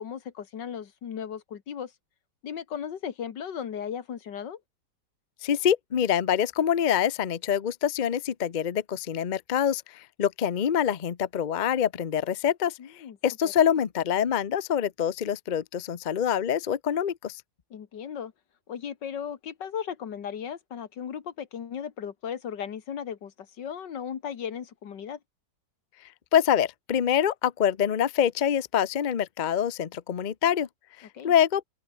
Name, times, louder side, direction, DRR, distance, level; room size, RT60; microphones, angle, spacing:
voice 1, 0.0-1.9 2.4-4.6 12.8-13.2 13.4-13.5 17.7-18.3 18.7-25.2 31.1-31.3, left 8 dB, 85° left, 2.2 m, -36 dB
voice 2, 5.4-12.8 13.2-17.4 26.3-30.7 31.0-31.6, left 9 dB, 45° left, 0.6 m, -25 dB
open air
omnidirectional pair, 1.9 m